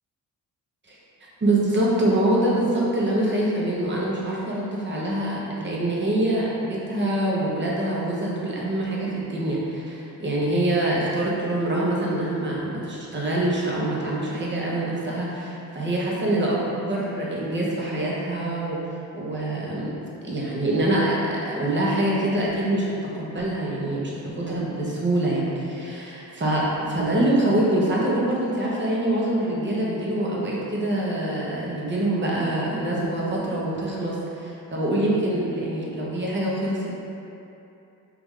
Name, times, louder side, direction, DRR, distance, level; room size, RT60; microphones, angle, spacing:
voice 1, 1.4-18.8 19.1-19.9 20.2-22.9 23.2-36.9, right 1 dB, 30° right, -5 dB, 1.0 m, -25 dB
4.7 x 2.6 x 3.7 m, 2.8 s
cardioid pair, 95°, 37 cm